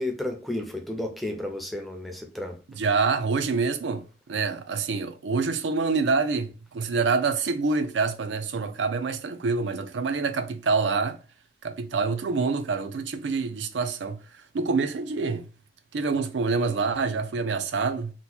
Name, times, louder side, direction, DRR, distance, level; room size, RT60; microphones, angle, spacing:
voice 1, 0.0-2.6, left 1 dB, ahead, 0.5 m, -32 dB
voice 2, 2.7-4.0 4.3-11.2 11.6-14.2 14.5-15.4 15.9-18.1, right 4 dB, 90° right, 0.5 m, -26 dB
3.0 x 2.1 x 4.1 m
head